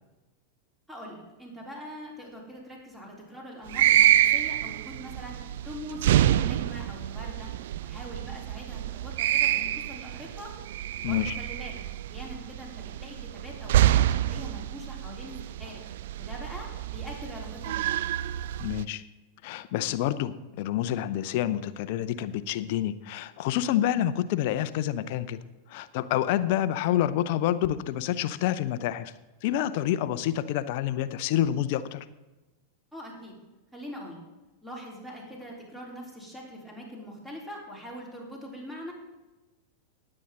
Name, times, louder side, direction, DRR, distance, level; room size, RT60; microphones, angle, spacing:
voice 1, 0.9-7.5 7.8-10.5 10.9-11.8 12.1-15.8 16.2-18.0 32.9-33.3 33.7-34.2 34.6-38.9, equal, 5° right, -2 dB, 3.9 m, -42 dB
sound 1, 3.7-18.8, right 12 dB, 55° right, 0.3 m, -27 dB
voice 2, 11.0-11.4 18.6-19.0 19.4-25.4 25.7-29.1 29.4-32.0, left 12 dB, 50° left, 14 dB, 0.7 m, -28 dB
18.5 x 8.8 x 3.8 m, 1.1 s
figure-of-eight pair, 90°, 0 cm